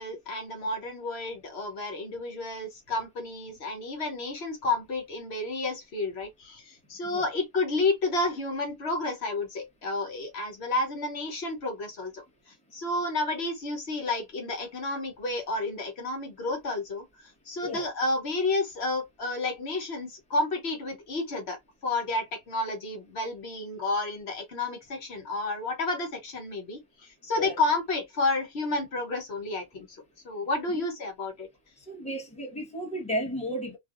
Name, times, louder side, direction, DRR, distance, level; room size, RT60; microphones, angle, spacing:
voice 1, 0.0-21.6 21.8-31.5, left 2 dB, 75° left, 1.2 m, -31 dB
voice 2, 31.9-33.8, equal, 5° left, 1.1 m, -33 dB
3.3 x 2.4 x 2.4 m
omnidirectional pair, 1.1 m